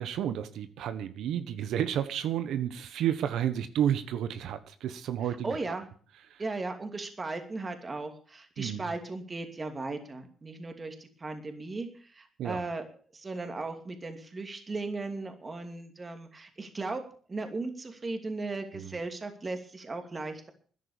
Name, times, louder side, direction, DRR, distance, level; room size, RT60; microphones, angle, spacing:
voice 1, 0.0-5.8 6.3-6.4 8.6-8.9 12.4-12.6 18.7-18.9, right 10 dB, 80° right, 11 dB, 1.3 m, -31 dB
voice 2, 5.2-5.9 6.4-12.9 13.1-17.0 17.3-20.5, right 3 dB, 30° right, 6 dB, 2.6 m, -37 dB
13.0 x 10.5 x 7.2 m, 0.43 s
cardioid pair, 90°, 0 cm